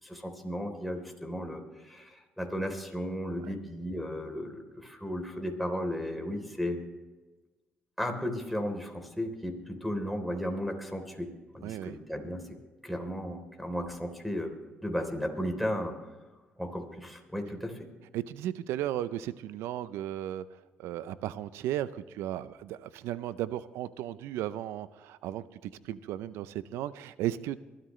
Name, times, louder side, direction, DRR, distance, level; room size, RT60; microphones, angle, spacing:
voice 1, 0.0-6.8 8.0-11.3 11.5-12.4 12.8-14.5 14.8-15.9 16.6-17.9, equal, ahead, 3 dB, 3.5 m, -34 dB
voice 2, 11.6-11.9 18.1-20.4 20.8-27.6, right 12 dB, 85° right, 16 dB, 0.6 m, -35 dB
23.0 x 13.0 x 3.2 m, 1.2 s
supercardioid pair, 70°, 4 cm